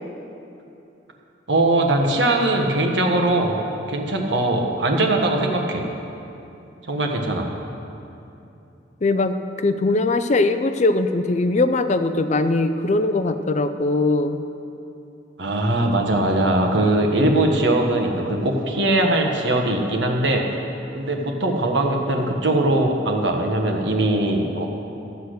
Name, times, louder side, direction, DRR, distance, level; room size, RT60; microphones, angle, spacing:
voice 1, 1.5-3.6 3.9-5.8 6.9-7.5 15.4-20.4 21.0-24.7, right 1 dB, 70° right, 2 dB, 1.4 m, -20 dB
voice 2, 9.0-14.5, left 2 dB, 40° left, 10 dB, 0.5 m, -21 dB
13.5 x 8.1 x 6.5 m, 2.8 s
head